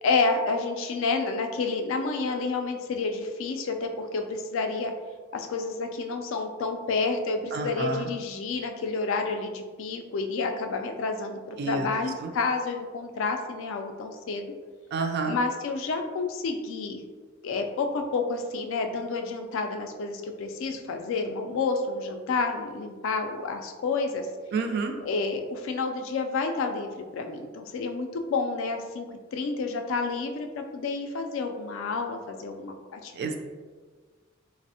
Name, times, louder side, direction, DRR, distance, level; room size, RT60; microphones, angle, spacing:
voice 1, 0.0-4.9 5.3-14.5 15.3-17.0 17.4-24.3 25.0-29.1 29.3-33.3, left 4 dB, 70° left, 5 dB, 0.3 m, -29 dB
voice 2, 7.5-8.1 11.6-11.9 12.2-12.3 14.9-15.4 24.5-24.9 33.1-33.3, right 4 dB, 55° right, 4 dB, 0.3 m, -29 dB
3.3 x 2.0 x 2.7 m, 1.5 s
head